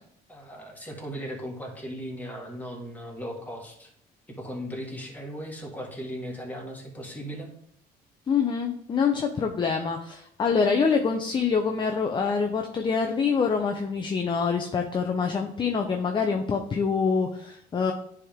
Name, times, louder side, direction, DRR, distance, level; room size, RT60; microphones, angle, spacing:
voice 1, 0.3-3.9 4.3-7.5, equal, 10° left, -1 dB, 1.8 m, -37 dB
voice 2, 8.3-17.9, left 5 dB, 30° left, 4 dB, 0.6 m, -25 dB
9.8 x 3.5 x 3.6 m, 0.68 s
cardioid pair, 110°, 17 cm